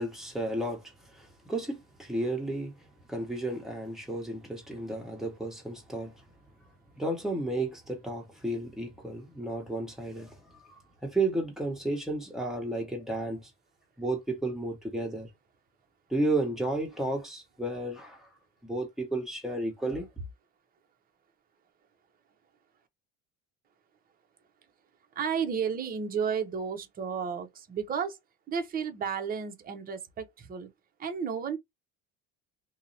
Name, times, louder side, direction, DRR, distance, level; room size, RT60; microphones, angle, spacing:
voice 1, 0.0-2.8 3.1-6.1 7.0-13.5 14.0-15.3 16.1-18.3 18.6-20.1, right 2 dB, ahead, 1.0 m, -33 dB
voice 2, 25.2-28.2 28.5-30.7 31.0-31.6, right 6 dB, 25° right, 0.6 m, -32 dB
2.7 x 2.0 x 2.6 m
supercardioid pair, 115°, 37 cm